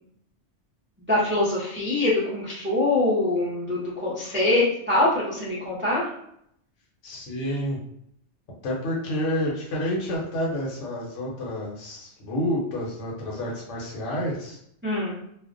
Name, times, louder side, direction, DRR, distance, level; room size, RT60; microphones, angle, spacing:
voice 1, 1.1-6.0 14.8-15.2, left 2 dB, 15° right, -8 dB, 0.4 m, -24 dB
voice 2, 7.0-7.8 8.6-14.6, equal, 80° left, -3 dB, 1.1 m, -29 dB
2.4 x 2.1 x 2.4 m, 0.72 s
omnidirectional pair, 1.2 m